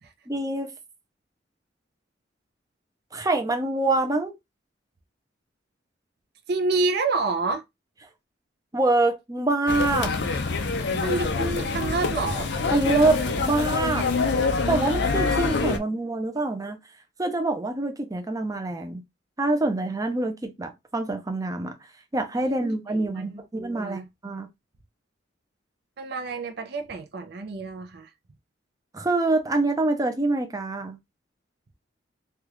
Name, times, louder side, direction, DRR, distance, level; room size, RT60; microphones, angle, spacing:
voice 1, 0.3-0.7 3.1-4.3 8.7-10.1 12.7-14.1 14.7-16.8 17.2-19.0 19.4-21.8 22.1-24.5 28.9-31.0, right 2 dB, 20° right, 0.6 m, -25 dB
voice 2, 6.5-7.6 11.0-12.5 22.4-24.1 26.0-28.1, right 3 dB, 60° right, 0.6 m, -29 dB
sound 1, 9.7-15.8, left 4 dB, 65° left, 0.5 m, -25 dB
3.4 x 2.4 x 3.0 m
head